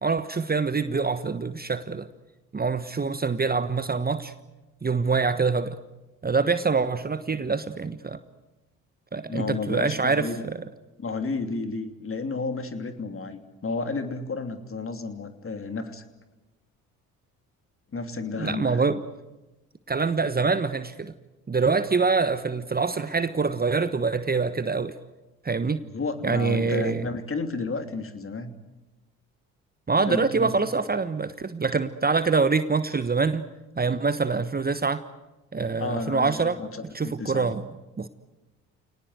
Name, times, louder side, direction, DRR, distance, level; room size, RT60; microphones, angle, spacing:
voice 1, 0.0-2.1 2.5-4.3 4.8-5.8 6.2-8.2 9.1-10.6 18.4-19.0 19.9-21.1 21.5-25.0 25.4-25.8 26.2-27.1 29.9-33.5 33.8-35.0 35.5-36.6 36.9-37.6 38.0-38.1, right 4 dB, 25° right, 13 dB, 1.2 m, -25 dB
voice 2, 9.3-10.4 11.0-16.0 17.9-18.9 25.8-28.5 30.0-30.5 35.8-37.6, left 4 dB, 35° left, 8 dB, 3.0 m, -32 dB
29.0 x 19.0 x 8.1 m, 1.1 s
hypercardioid pair, 50°, 40 cm